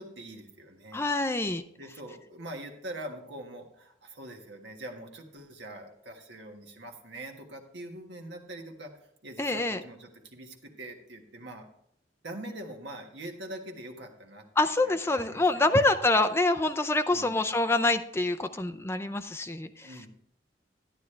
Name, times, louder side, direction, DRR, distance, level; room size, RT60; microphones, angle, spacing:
voice 1, 0.0-1.1 1.8-8.9 9.2-11.7 12.2-14.5 14.8-15.8 17.1-17.4 19.8-20.1, right 1 dB, 75° right, 3 dB, 1.5 m, -43 dB
voice 2, 0.9-1.6 9.4-9.8 14.6-19.9, left 2 dB, 15° left, 7 dB, 0.4 m, -26 dB
11.5 x 9.4 x 3.3 m, 0.71 s
head